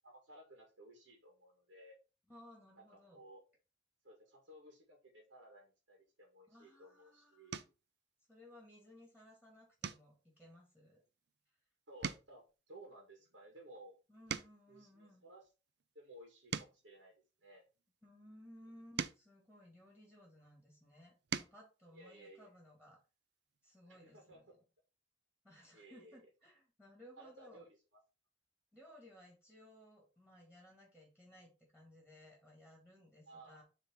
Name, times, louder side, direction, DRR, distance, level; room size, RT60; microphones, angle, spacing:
voice 1, 0.0-2.0 2.8-3.4 4.0-7.6 11.9-14.0 14.7-15.4 15.9-17.1 17.4-17.6 21.9-22.5 23.9-24.4 25.7-26.2 27.2-27.7 33.3-33.6, right 1 dB, 90° right, 0 dB, 2.1 m, -57 dB
voice 2, 2.3-3.2 6.5-7.7 8.3-11.0 14.1-15.2 18.0-23.0 23.6-24.5 25.4-27.7 28.7-33.6, left 1 dB, 5° right, -2 dB, 2.3 m, -60 dB
sound 1, 6.6-6.9 7.5-7.9 8.4-8.8 9.1-9.3 9.8-11.6 11.9-14.8 15.4-17.9 18.6-20.4 20.9-21.7 23.1-23.2 23.5-23.6, right 7 dB, 65° right, 0.5 m, -46 dB
6.6 x 3.5 x 4.6 m, 0.31 s
head